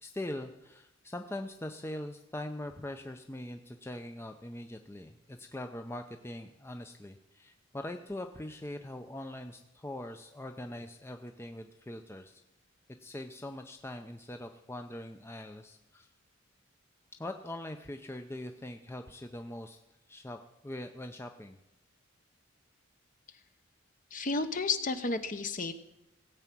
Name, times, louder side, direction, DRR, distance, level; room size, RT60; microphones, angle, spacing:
voice 1, 0.0-12.4 13.0-16.1 17.2-19.8 20.1-21.6, left 1 dB, 10° left, 6 dB, 0.5 m, -42 dB
voice 2, 24.1-25.7, left 3 dB, 40° left, 9 dB, 0.9 m, -32 dB
18.0 x 8.2 x 6.0 m, 0.88 s
head